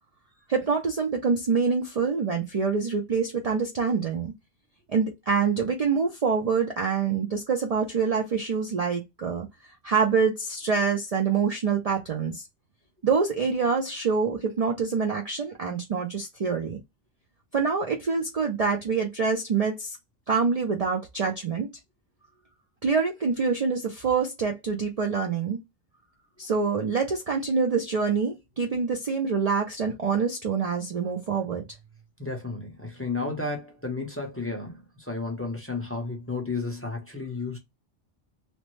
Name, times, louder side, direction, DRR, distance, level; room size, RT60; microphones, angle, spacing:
voice 1, 0.5-4.3 4.9-9.5 9.8-12.4 13.0-16.8 17.5-20.0 20.3-21.7 22.8-25.6 26.4-31.6, right 5 dB, 70° right, 0.3 m, -26 dB
voice 2, 32.2-37.6, left 3 dB, 15° left, 0.5 m, -32 dB
2.9 x 2.0 x 3.1 m
omnidirectional pair, 1.3 m